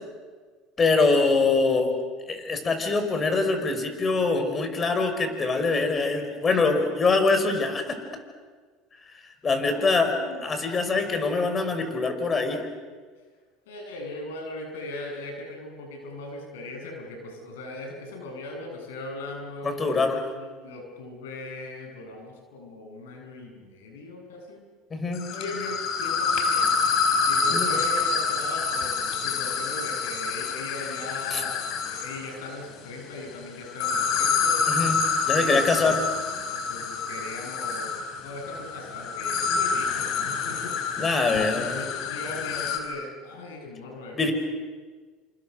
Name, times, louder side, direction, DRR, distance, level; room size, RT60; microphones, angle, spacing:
voice 1, 0.8-1.9 2.3-8.0 9.4-10.1 10.4-12.6 19.6-20.2 24.9-25.3 27.5-27.7 31.3-31.4 34.7-35.0 35.2-36.0 41.0-41.9 44.2-44.3, left 3 dB, 30° left, 7 dB, 6.0 m, -24 dB
voice 2, 9.6-10.4 11.0-11.1 13.7-24.6 25.3-26.7 27.3-34.7 35.3-35.9 36.5-40.8 41.5-44.3, left 2 dB, 90° left, 2 dB, 7.8 m, -39 dB
sound 1, 25.1-32.3 33.7-42.8, left 5 dB, 65° left, 4.9 m, -27 dB
30.0 x 27.5 x 6.8 m, 1.5 s
supercardioid pair, 90°, 0 cm